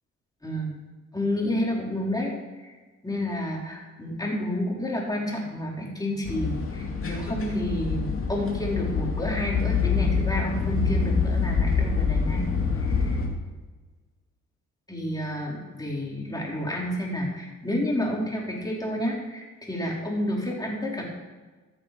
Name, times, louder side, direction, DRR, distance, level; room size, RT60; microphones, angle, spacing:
voice 1, 0.4-0.7 1.1-2.7 3.0-12.5 12.7-13.2 14.9-21.1, left 1 dB, 10° left, -3 dB, 4.4 m, -30 dB
sound 1, 6.2-13.3, left 5 dB, 45° left, 2.6 m, -26 dB
15.0 x 7.4 x 6.2 m, 1.3 s
cardioid pair, 90°, 30 cm